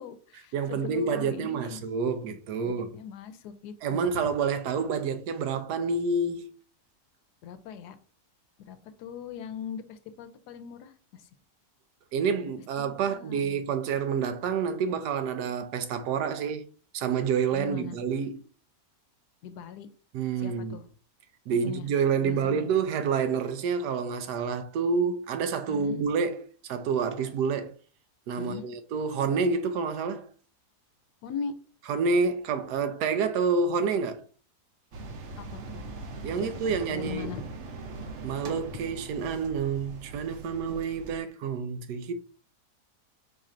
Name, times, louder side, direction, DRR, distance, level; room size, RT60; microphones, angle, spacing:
voice 1, 0.0-1.8 2.3-4.3 7.4-8.0 8.7-11.3 13.0-13.7 17.5-18.0 19.4-19.9 20.4-20.8 21.6-21.9 22.2-22.7 25.7-26.0 28.4-28.7 31.2-31.5 35.4-35.8 36.4-37.4, left 7 dB, 85° left, 1.2 m, -40 dB
voice 2, 0.5-3.0 3.8-6.5 12.1-16.7 16.9-18.4 20.1-20.8 21.5-26.4 26.7-27.7 28.3-30.3 31.9-34.2 36.2-37.3 38.2-42.1, right 5 dB, 85° right, 1.2 m, -28 dB
sound 1, 34.9-41.2, right 3 dB, 55° right, 0.9 m, -41 dB
4.8 x 2.5 x 4.2 m
omnidirectional pair, 1.7 m